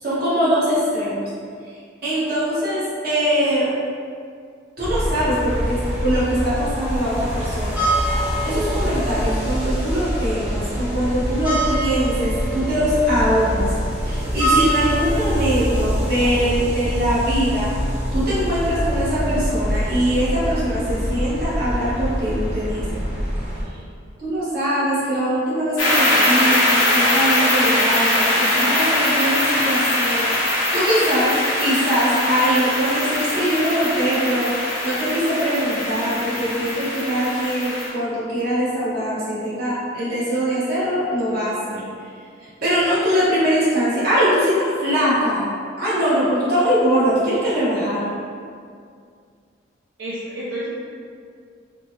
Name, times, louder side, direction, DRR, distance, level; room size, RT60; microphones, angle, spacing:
voice 1, 0.0-1.3 2.0-3.7 4.8-7.8 8.4-13.7 14.0-17.7 18.1-23.0 24.2-30.3 30.7-34.5 34.8-41.8 42.6-45.4 45.8-48.1, equal, 50° right, -11 dB, 1.1 m, -22 dB
sound 1, 4.8-23.6, equal, 10° right, 0.6 m, -24 dB
sound 2, 25.8-37.9, left 1 dB, 80° left, 0.7 m, -21 dB
voice 2, 50.0-50.7, equal, 75° right, -9 dB, 0.5 m, -29 dB
3.3 x 2.1 x 2.7 m, 2.2 s
head